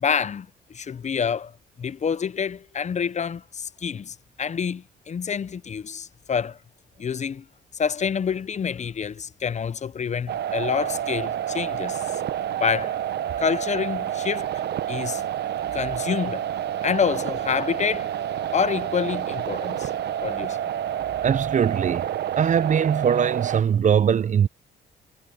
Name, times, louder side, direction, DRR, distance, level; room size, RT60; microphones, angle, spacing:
voice 1, 0.0-1.5 1.8-6.6 7.0-7.4 7.7-12.0 12.4-13.0 13.4-14.5 14.9-15.2 15.7-16.5 16.8-18.1 18.5-19.9 20.2-20.6, left 7 dB, 40° left, 0.7 m, -27 dB
sound 1, 10.3-23.6, right 10 dB, 70° right, 1.0 m, -29 dB
voice 2, 21.2-22.1 22.4-24.5, right 7 dB, 45° right, 0.6 m, -21 dB
cardioid pair, 75°, 18 cm